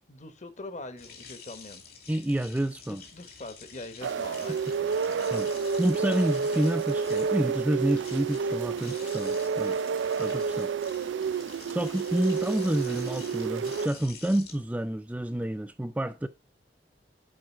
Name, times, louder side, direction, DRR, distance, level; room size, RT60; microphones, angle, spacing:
voice 1, 0.1-1.8 2.9-5.7, left 2 dB, 40° left, 1.2 m, -44 dB
sound 1, 1.0-15.4, left 6 dB, 55° left, 2.6 m, -48 dB
voice 2, 2.1-3.0 5.3-5.5 5.8-9.8 10.2-10.7 11.7-16.3, right 1 dB, 10° right, 0.3 m, -29 dB
sound 2, 4.0-13.9, right 6 dB, 85° right, 0.4 m, -30 dB
7.7 x 4.7 x 5.6 m
head